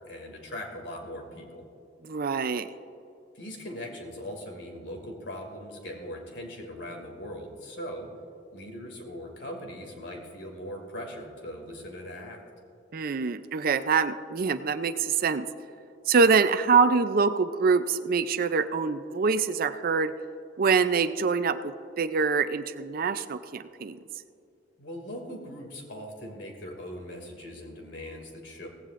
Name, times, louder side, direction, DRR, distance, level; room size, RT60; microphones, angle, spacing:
voice 1, 0.0-1.6 3.3-8.1 8.5-12.4 24.8-28.7, equal, 75° left, 2 dB, 2.4 m, -40 dB
voice 2, 2.0-2.7 12.9-15.5 16.1-20.1 20.6-24.0, right 5 dB, 50° right, 12 dB, 0.5 m, -25 dB
17.5 x 15.5 x 2.5 m, 2.6 s
head